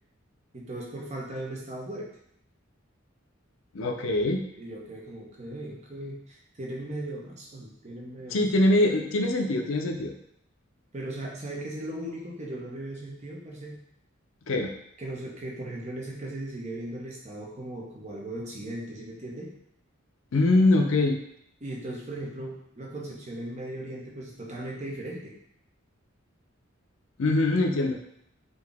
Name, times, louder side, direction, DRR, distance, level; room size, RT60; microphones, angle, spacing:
voice 1, 0.5-2.1 4.6-8.5 10.9-13.8 15.0-19.5 21.6-25.3, right 1 dB, 35° right, -3 dB, 0.9 m, -38 dB
voice 2, 3.7-4.4 8.3-10.1 14.5-14.7 20.3-21.2 27.2-28.0, left 2 dB, 70° left, 3 dB, 0.5 m, -23 dB
4.0 x 2.7 x 3.5 m, 0.73 s
head